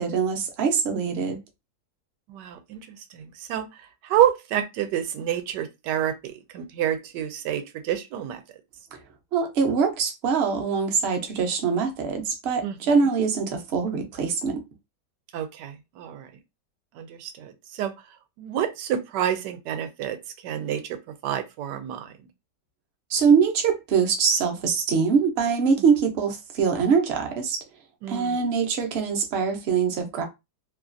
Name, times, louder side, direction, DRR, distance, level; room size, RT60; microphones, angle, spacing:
voice 1, 0.0-1.4 8.9-9.0 9.3-14.6 23.1-27.6 28.1-30.2, right 6 dB, 55° right, 0.7 m, -23 dB
voice 2, 2.3-8.4 12.6-13.2 15.3-16.3 16.9-17.9 18.4-20.2 20.4-21.0 21.2-22.1 28.0-28.5, right 10 dB, 85° right, 1.2 m, -28 dB
3.0 x 2.4 x 2.5 m
omnidirectional pair, 1.8 m